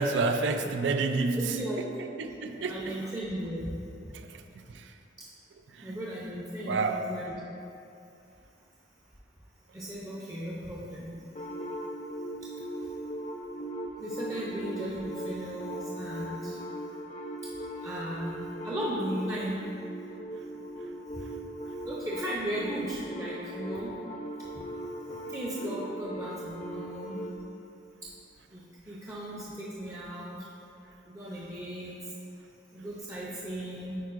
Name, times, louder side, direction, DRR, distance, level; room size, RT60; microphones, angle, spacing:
voice 1, 0.0-1.9 2.2-3.0 4.1-4.4 4.7-4.9 5.7-6.0 6.7-7.1, right 3 dB, 90° right, 7 dB, 0.4 m, -29 dB
voice 2, 1.4-1.9 2.7-3.8 5.2-5.3 5.8-7.3 9.7-11.5 12.4-13.0 14.0-16.6 17.4-17.5 17.8-19.6 21.1-23.9 24.4-24.5 25.1-27.2 28.0-28.1 28.5-30.5 31.0-32.2 32.7-34.0, right 1 dB, 20° right, -6 dB, 0.5 m, -36 dB
sound 1, 11.4-27.4, right 1 dB, 40° left, 0.5 m, -39 dB
9.2 x 4.4 x 2.5 m, 2.7 s
head